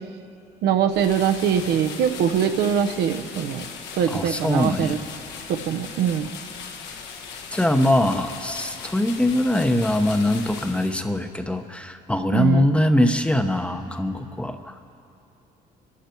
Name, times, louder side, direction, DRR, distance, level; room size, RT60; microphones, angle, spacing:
voice 1, 0.6-3.7 3.9-5.0 5.5-6.3 12.3-12.7, right 8 dB, 75° right, 6 dB, 0.9 m, -22 dB
sound 1, 0.9-11.3, left 6 dB, 80° left, 1.6 m, -38 dB
voice 2, 4.1-5.0 7.5-14.7, left 1 dB, 5° left, 7 dB, 0.8 m, -22 dB
25.5 x 12.0 x 4.6 m, 2.6 s
cardioid pair, 110°, 17 cm